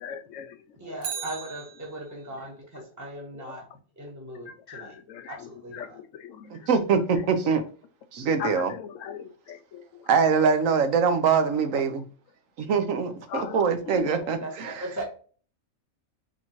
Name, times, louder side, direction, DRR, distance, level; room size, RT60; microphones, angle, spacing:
voice 1, 0.0-0.6 0.8-1.2 3.4-3.5 4.7-5.4 5.7-6.7 8.4-10.1 13.3-13.6 13.9-14.3, left 9 dB, 70° left, 0.9 m, -39 dB
voice 2, 0.8-3.7 4.0-5.0 5.3-6.0 14.4-15.0, right 1 dB, 15° right, 1.2 m, -38 dB
Bicycle, 0.9-2.4 10.7-10.8, right 8 dB, 90° right, 1.3 m, -38 dB
voice 3, 6.5-7.6 8.1-8.7 10.1-12.0 12.6-14.8, right 5 dB, 70° right, 1.1 m, -23 dB
4.3 x 3.8 x 2.9 m
omnidirectional pair, 1.5 m